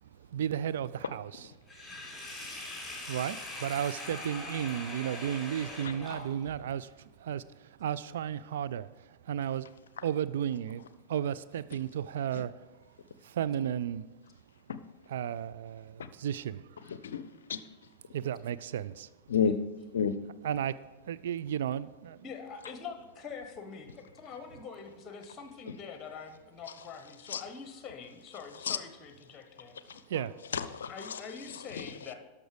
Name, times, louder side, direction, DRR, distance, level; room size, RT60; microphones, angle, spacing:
voice 1, 0.0-1.5 3.1-9.7 10.0-10.8 11.1-12.7 13.2-14.0 15.1-16.7 18.1-19.1 20.4-20.7 21.0-22.2 30.1-30.3, right 9 dB, 60° right, 15 dB, 0.4 m, -34 dB
Sink (filling or washing), 1.7-6.6, left 2 dB, 5° left, 3.9 m, -42 dB
voice 2, 16.9-17.6 19.3-19.6 19.9-20.2 27.3-27.4 28.6-28.8 29.9-30.0 30.5-31.2 31.8-31.9, left 7 dB, 65° left, 13 dB, 0.6 m, -31 dB
voice 3, 22.2-30.3 30.8-32.1, left 6 dB, 20° left, 7 dB, 1.2 m, -45 dB
12.5 x 6.0 x 4.9 m, 1.2 s
figure-of-eight pair, 90°, 0 cm